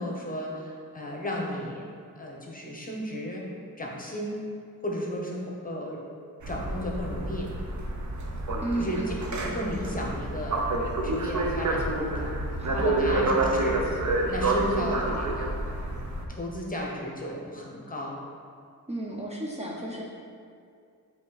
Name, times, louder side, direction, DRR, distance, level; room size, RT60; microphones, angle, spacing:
voice 1, 0.0-1.8 2.2-3.4 3.8-4.4 4.8-6.0 6.5-7.5 8.7-9.0 9.3-10.7 11.0-13.8 14.3-15.6 16.3-18.2, equal, 25° left, -2 dB, 0.9 m, -34 dB
sound 1, 6.4-16.2, right 2 dB, 55° right, 0.7 m, -29 dB
voice 2, 8.6-9.2 12.6-13.5 18.9-20.0, right 1 dB, 20° right, -4 dB, 0.6 m, -33 dB
8.1 x 2.9 x 4.0 m, 2.3 s
wide cardioid pair, 120°, 35 cm